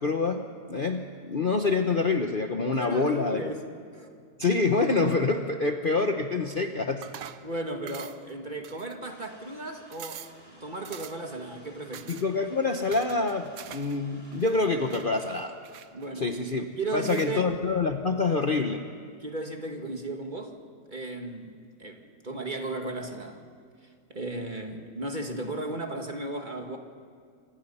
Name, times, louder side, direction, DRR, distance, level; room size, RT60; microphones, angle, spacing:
voice 1, 0.0-3.5 4.4-7.1 12.1-15.6 16.2-16.7 16.9-18.8, left 3 dB, 40° left, 5 dB, 1.0 m, -26 dB
voice 2, 2.8-3.6 3.9-4.1 7.4-12.1 15.9-16.3 16.8-17.5 19.2-20.6 20.9-23.4 24.1-26.8, right 2 dB, 30° right, 4 dB, 1.8 m, -35 dB
sound 1, 7.0-7.5 7.9-8.3 8.6-9.2 9.6-9.7 9.9-10.4 10.8-11.3 11.9-12.3 12.9-14.0 14.2-15.1 15.6-16.4 17.0-17.4, right 10 dB, 65° right, 1.1 m, -44 dB
sound 2, 9.0-15.3, equal, 5° left, 4.9 m, -54 dB
28.5 x 25.5 x 5.6 m, 2.2 s
omnidirectional pair, 1.8 m